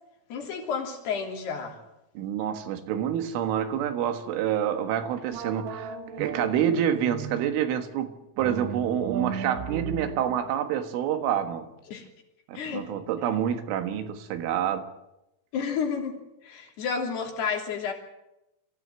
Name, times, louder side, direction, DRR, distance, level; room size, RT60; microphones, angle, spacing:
voice 1, 0.3-1.8 11.9-12.1 12.5-12.9 15.5-17.9, left 6 dB, 60° left, 5.1 m, -31 dB
voice 2, 2.2-11.7 12.5-14.9, right 9 dB, 85° right, 4.1 m, -28 dB
sound 1, 5.3-7.6 8.4-11.7, right 6 dB, 60° right, 2.7 m, -36 dB
25.5 x 16.0 x 9.1 m
omnidirectional pair, 5.5 m